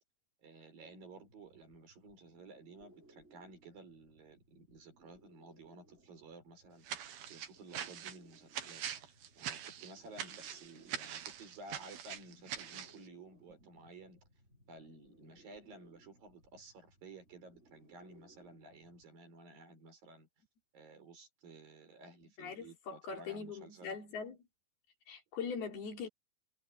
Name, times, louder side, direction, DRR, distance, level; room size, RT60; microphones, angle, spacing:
voice 1, 0.4-14.2 14.7-20.3 20.7-24.0, right 3 dB, 65° right, 7.3 m, -54 dB
sound 1, 0.8-19.0, right 1 dB, 15° right, 7.0 m, -66 dB
sound 2, 6.8-13.0, right 9 dB, 85° right, 3.7 m, -43 dB
voice 2, 22.4-24.4 25.1-26.1, left 5 dB, 85° left, 6.2 m, -41 dB
omnidirectional pair, 4.3 m